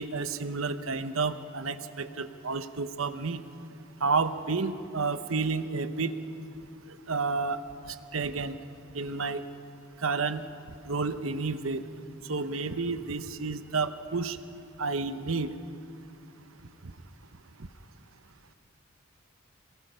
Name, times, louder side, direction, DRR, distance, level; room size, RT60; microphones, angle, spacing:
voice 1, 0.0-3.4 4.0-6.1 7.1-7.6 7.9-8.6 8.9-9.4 10.0-10.4 10.9-11.8 12.3-14.4 14.8-15.5, right 4 dB, 80° right, 11 dB, 0.9 m, -30 dB
26.5 x 20.0 x 5.7 m, 2.5 s
head